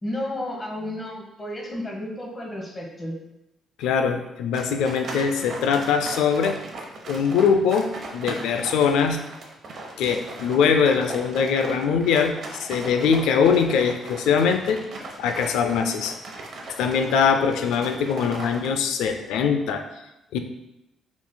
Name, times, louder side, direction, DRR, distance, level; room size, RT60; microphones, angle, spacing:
voice 1, 0.0-3.1, left 1 dB, 25° left, -2 dB, 1.4 m, -32 dB
voice 2, 3.8-6.6 7.1-9.2 10.0-12.3 12.6-14.8 15.2-16.2 16.8-19.8 20.3-20.4, left 6 dB, 90° left, 6 dB, 0.4 m, -22 dB
sound 1, 4.5-18.7, right 2 dB, 60° right, 0.8 m, -38 dB
5.8 x 3.9 x 2.2 m, 0.92 s
cardioid pair, 90°, 0 cm